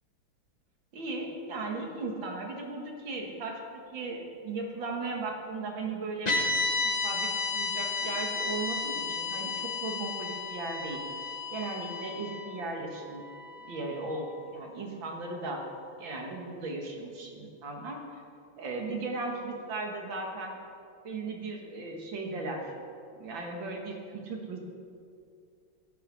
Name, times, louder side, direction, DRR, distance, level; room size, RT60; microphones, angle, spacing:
voice 1, 0.9-6.3 6.8-11.0 11.5-13.2 13.7-15.6 16.0-18.2 18.6-20.6 21.0-22.7 23.2-24.6, right 3 dB, 65° right, 2 dB, 2.2 m, -37 dB
sound 1, 6.3-14.6, left 3 dB, 25° left, 0.9 m, -33 dB
11.5 x 9.8 x 6.3 m, 2.4 s
omnidirectional pair, 2.3 m